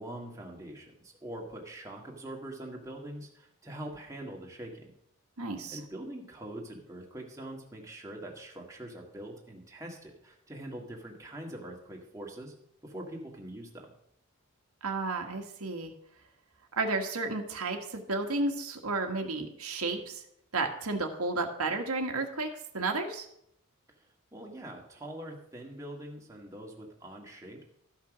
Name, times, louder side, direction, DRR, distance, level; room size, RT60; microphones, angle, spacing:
voice 1, 0.0-4.9 5.7-12.5 12.8-13.9 24.3-27.6, right 1 dB, 15° right, 0 dB, 1.7 m, -43 dB
voice 2, 5.4-5.8 14.8-15.9 16.8-20.2 20.5-22.5 22.7-23.3, right 3 dB, 85° right, 3 dB, 1.5 m, -32 dB
13.0 x 5.9 x 6.1 m, 0.73 s
head